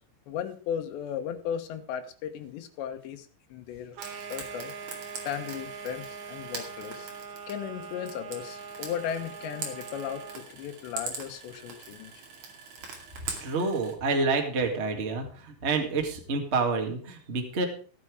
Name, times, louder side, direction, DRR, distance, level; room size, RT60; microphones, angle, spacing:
voice 1, 0.3-4.7 5.2-7.1 7.5-12.1, left 9 dB, 80° left, 7 dB, 3.4 m, -36 dB
sound 1, 3.9-10.5, right 6 dB, 70° right, 1.9 m, -42 dB
Frying (food), 4.0-13.9, right 4 dB, 45° right, 3.1 m, -42 dB
voice 2, 13.4-17.6, right 4 dB, 85° right, 3 dB, 0.6 m, -28 dB
15.0 x 9.2 x 4.8 m, 0.41 s
omnidirectional pair, 5.1 m